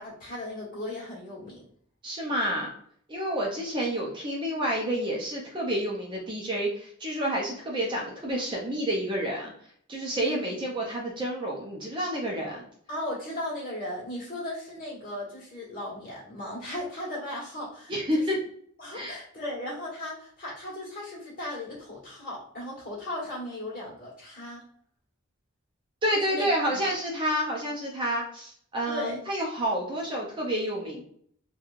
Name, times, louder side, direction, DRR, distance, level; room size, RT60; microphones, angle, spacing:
voice 1, 0.0-1.6 10.1-10.4 12.9-18.3 18.8-24.6 26.3-26.5 28.9-29.2, left 1 dB, 40° left, -6 dB, 1.3 m, -36 dB
voice 2, 2.0-2.7 3.1-9.5 9.9-12.6 17.9-18.4 18.9-19.2 26.0-31.0, equal, 25° right, -2 dB, 0.4 m, -29 dB
3.0 x 2.2 x 2.4 m, 0.62 s
head